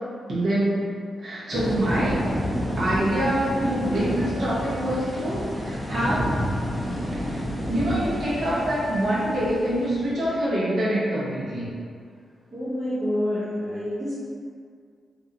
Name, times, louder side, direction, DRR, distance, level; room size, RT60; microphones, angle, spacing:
voice 1, 0.3-0.9 1.2-2.2 2.8-6.3 6.8-7.4 7.7-11.7, right 1 dB, 65° right, -10 dB, 1.0 m, -25 dB
sound 1, 1.5-10.3, equal, ahead, 0.5 m, -29 dB
voice 2, 12.5-14.2, left 1 dB, 40° right, -11 dB, 0.8 m, -27 dB
2.7 x 2.3 x 2.7 m, 2.1 s
cardioid pair, 60°, 0 cm